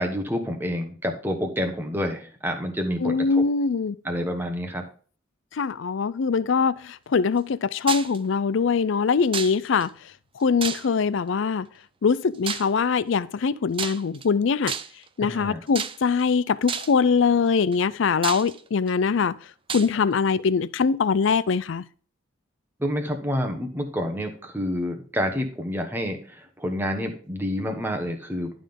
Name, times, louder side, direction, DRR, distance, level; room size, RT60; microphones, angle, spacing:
voice 1, 0.0-3.4 4.0-4.8 15.2-15.6 22.8-28.5, equal, 10° right, 1.1 m, -28 dB
voice 2, 3.0-4.0 5.6-9.9 10.4-11.7 12.0-14.7 15.2-19.3 19.7-21.8, left 5 dB, 65° left, 0.4 m, -22 dB
sound 1, 7.9-8.2 9.3-9.9 10.6-11.1 12.5-12.8 13.7-14.3 14.7-15.1 15.8-16.2 16.7-17.0 17.7-17.8 18.2-18.9 19.7-19.9, right 7 dB, 25° right, 0.4 m, -31 dB
11.5 x 3.8 x 5.2 m
head